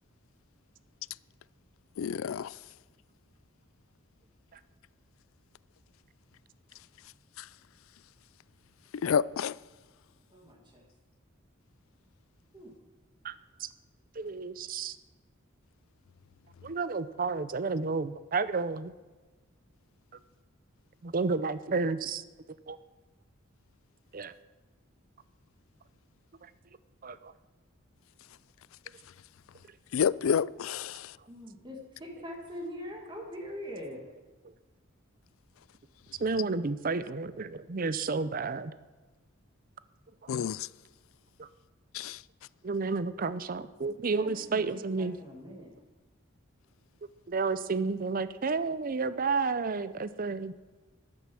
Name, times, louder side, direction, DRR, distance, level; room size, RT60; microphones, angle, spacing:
voice 1, 2.0-2.6 7.4-7.5 9.0-9.5 29.9-31.2 40.3-40.7 41.9-42.2, left 7 dB, 85° left, 0.4 m, -29 dB
voice 2, 10.3-10.9 12.5-12.7 31.3-34.1 44.2-45.7, equal, 25° right, 1.9 m, -43 dB
voice 3, 14.2-15.0 16.6-18.9 21.0-22.2 22.7-22.8 24.1-24.3 27.0-27.3 36.2-38.7 41.4-41.5 42.6-45.2 47.3-50.5, right 4 dB, 45° right, 0.6 m, -31 dB
14.0 x 11.5 x 6.0 m
head